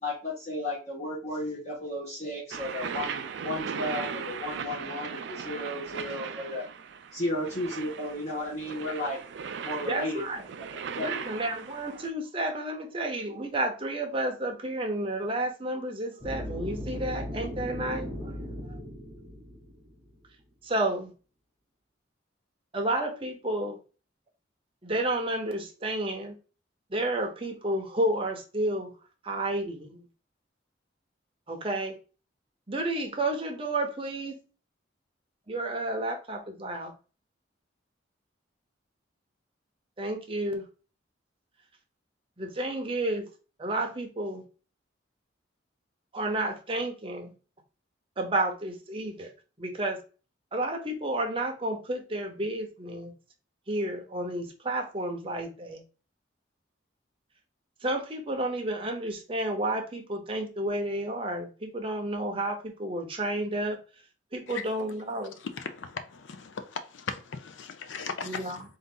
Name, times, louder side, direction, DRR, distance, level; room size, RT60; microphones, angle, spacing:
voice 1, 0.0-6.6 7.1-9.2 9.6-10.2 11.0-11.2, left 1 dB, 35° left, 1.2 m, -34 dB
sound 1, 2.5-12.1, right 6 dB, 65° right, 0.4 m, -38 dB
voice 2, 9.8-10.4 11.0-18.4 18.7-18.8 20.6-21.1 22.7-23.8 24.8-26.4 26.9-28.9 29.2-30.1 31.5-32.0 32.7-34.4 35.5-36.9 40.0-40.7 42.4-43.3 43.6-44.5 46.1-47.3 48.2-49.3 49.6-50.0 50.5-53.1 53.7-55.8 57.8-63.8 64.3-65.4 68.2-68.6, right 1 dB, 30° right, 0.8 m, -31 dB
sound 2, 16.2-20.2, equal, 20° left, 1.6 m, -37 dB
voice 3, 65.4-68.6, left 5 dB, 75° left, 0.5 m, -38 dB
3.8 x 2.6 x 3.7 m
head